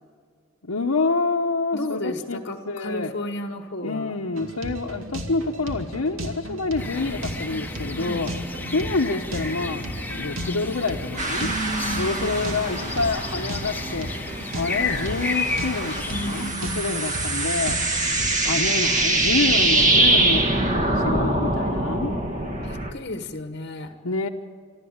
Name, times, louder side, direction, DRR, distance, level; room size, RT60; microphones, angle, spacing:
voice 1, 0.6-3.1 3.8-8.3 8.7-9.9 10.1-11.5 12.0-14.1 14.5-17.8 18.5-22.1 24.0-24.3, left 3 dB, 85° left, -1 dB, 1.1 m, -27 dB
voice 2, 1.7-4.2 7.9-8.4 11.4-12.4 16.1-17.2 19.5-19.9 22.6-23.9, left 1 dB, 50° left, 8 dB, 1.1 m, -33 dB
sound 1, 4.4-18.7, right 1 dB, 65° right, 2.6 m, -35 dB
sound 2, 6.8-16.5, left 3 dB, 10° left, 1.0 m, -32 dB
sound 3, 11.2-14.1 14.4-22.9, right 2 dB, 35° right, 1.9 m, -24 dB
27.0 x 13.0 x 8.8 m, 2.1 s
head